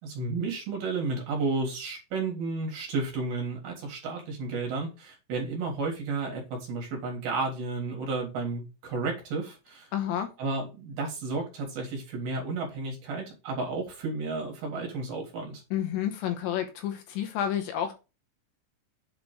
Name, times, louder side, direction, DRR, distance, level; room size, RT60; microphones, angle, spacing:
voice 1, 0.0-9.9 10.4-15.6, right 3 dB, 60° right, 3.1 m, -32 dB
voice 2, 9.9-10.3 15.7-17.9, left 10 dB, 80° left, 3.0 m, -30 dB
8.0 x 3.6 x 5.1 m
omnidirectional pair, 5.6 m